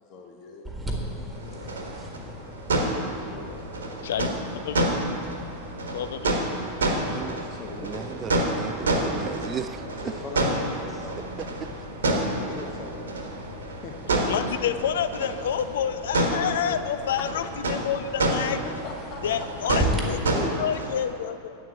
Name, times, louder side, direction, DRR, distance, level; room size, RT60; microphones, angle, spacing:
voice 1, 0.0-1.7 3.3-3.7 7.2-8.3 9.8-10.2 12.1-13.3 13.8-14.0 18.4-20.0, left 4 dB, 35° left, 2 dB, 1.0 m, -42 dB
sound 1, 0.6-20.0, equal, 10° right, 1.6 m, -39 dB
sound 2, 1.3-21.1, right 1 dB, 70° right, 1.4 m, -29 dB
voice 2, 4.6-5.0 5.9-6.5 14.2-18.6 19.2-20.2 20.6-21.5, left 9 dB, 60° left, 11 dB, 0.5 m, -28 dB
voice 3, 7.1-7.4 7.8-9.9 11.2-11.7, right 8 dB, 25° right, 12 dB, 0.4 m, -36 dB
voice 4, 10.0-11.3 16.6-16.8 17.2-17.3 19.9-20.6 20.9-21.0, left 1 dB, 15° left, -2 dB, 2.0 m, -37 dB
8.0 x 7.4 x 8.5 m, 2.6 s
figure-of-eight pair, 90°, 0 cm